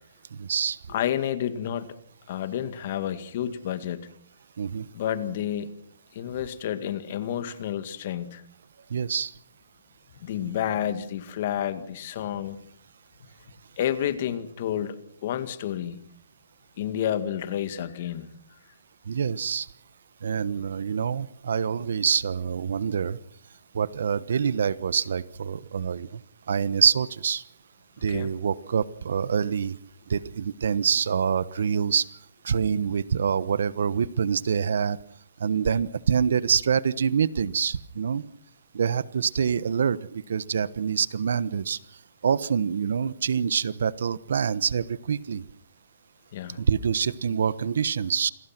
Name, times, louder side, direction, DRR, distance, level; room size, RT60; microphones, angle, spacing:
voice 1, 0.4-0.8 4.6-4.8 8.9-9.3 19.1-19.7 20.2-23.2 23.7-26.1 26.5-27.4 28.0-29.7 30.1-32.1 32.4-35.0 35.4-38.2 38.7-41.8 42.2-45.4 46.6-48.3, right 7 dB, 70° right, 18 dB, 1.1 m, -26 dB
voice 2, 0.9-2.0 2.3-4.1 4.9-5.8 6.1-8.4 10.2-12.6 13.8-16.0 16.8-18.3 28.1-28.3 46.3-46.6, left 10 dB, 40° left, 12 dB, 2.0 m, -30 dB
28.0 x 21.0 x 6.0 m, 0.63 s
hypercardioid pair, 175°, 0 cm